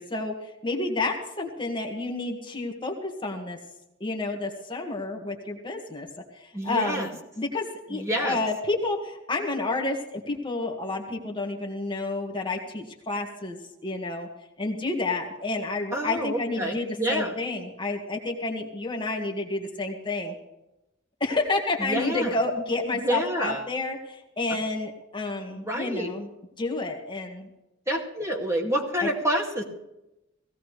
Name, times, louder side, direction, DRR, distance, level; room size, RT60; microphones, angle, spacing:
voice 1, 0.0-3.6 4.0-6.1 6.3-7.1 7.4-14.3 14.6-20.3 21.2-26.3 26.6-27.5 29.0-29.1, left 2 dB, 25° left, 1 dB, 1.9 m, -30 dB
voice 2, 6.5-7.1 7.9-8.4 15.9-17.3 21.8-22.3 23.0-23.6 25.5-26.1 27.9-29.6, right 1 dB, 15° right, 0 dB, 2.3 m, -28 dB
18.0 x 16.5 x 3.4 m, 0.89 s
head